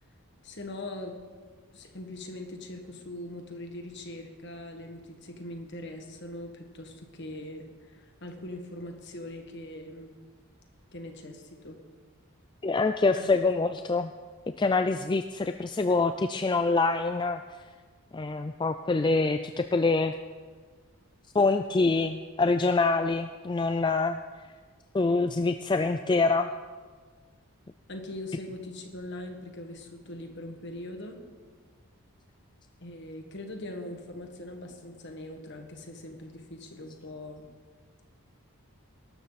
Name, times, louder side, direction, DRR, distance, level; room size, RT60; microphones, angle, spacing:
voice 1, 0.4-1.2 1.7-10.2 10.9-11.8 13.2-13.3 27.9-31.2 32.8-37.5, left 1 dB, 50° left, 4 dB, 1.8 m, -41 dB
voice 2, 12.6-14.1 14.5-17.6 18.1-20.1 21.3-24.5 24.9-26.5, left 3 dB, 20° left, 8 dB, 0.3 m, -25 dB
18.5 x 12.5 x 4.2 m, 1.5 s
head